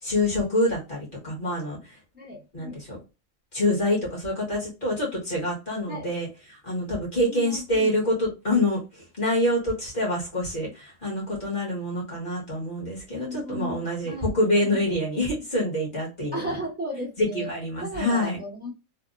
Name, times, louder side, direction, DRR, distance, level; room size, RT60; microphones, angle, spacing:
voice 1, 0.0-2.0 2.5-3.0 3.5-6.3 6.6-16.6 17.2-18.4, left 1 dB, 40° left, -4 dB, 1.5 m, -26 dB
voice 2, 2.1-2.8 5.9-6.1 7.3-7.9 13.2-14.3 14.6-14.8 16.3-17.5 17.8-18.7, equal, 10° right, -4 dB, 0.8 m, -35 dB
3.4 x 2.2 x 2.5 m, 0.27 s
omnidirectional pair, 1.4 m